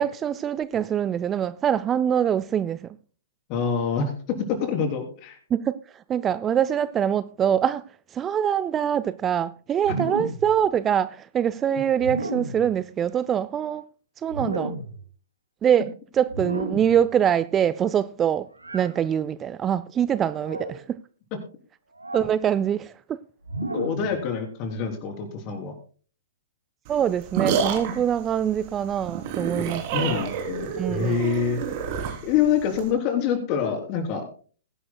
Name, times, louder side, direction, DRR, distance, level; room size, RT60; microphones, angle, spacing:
voice 1, 0.0-3.0 5.5-7.8 8.1-13.9 14.2-14.8 15.6-15.9 16.1-18.5 18.7-21.0 22.1-23.2 26.9-30.1 30.8-31.1, right 9 dB, 20° right, 0.4 m, -24 dB
voice 2, 3.5-5.4 9.9-10.1 23.7-25.7 29.9-31.6 32.2-34.3, left 6 dB, 35° left, 3.6 m, -26 dB
sound 1, 9.8-10.5 12.0-12.7 14.3-15.0 16.3-17.0 18.6-18.9 20.3-20.8 22.0-22.3 23.4-24.1, right 2 dB, 90° right, 2.4 m, -32 dB
sound 2, 26.9-32.9, right 7 dB, 45° right, 3.2 m, -29 dB
21.0 x 11.0 x 2.3 m
figure-of-eight pair, 115°, 0 cm